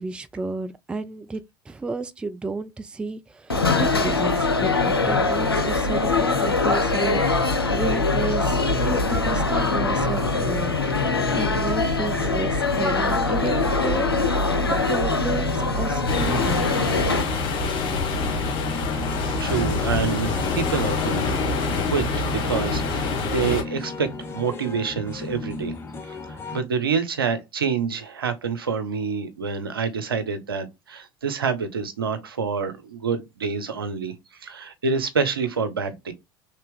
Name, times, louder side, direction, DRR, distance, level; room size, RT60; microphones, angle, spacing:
voice 1, 0.0-16.8, right 3 dB, 10° right, 0.3 m, -32 dB
sound 1, 3.5-17.2, left 3 dB, 85° left, 0.5 m, -22 dB
sound 2, 8.4-26.6, left 3 dB, 20° left, 0.9 m, -36 dB
sound 3, 16.1-23.6, left 3 dB, 45° left, 1.4 m, -26 dB
voice 2, 18.7-19.0 19.4-21.3 21.9-24.1 24.3-25.7 26.0-34.1 34.4-36.1, right 5 dB, 75° right, 0.7 m, -27 dB
3.3 x 2.8 x 3.4 m
figure-of-eight pair, 70°, 12 cm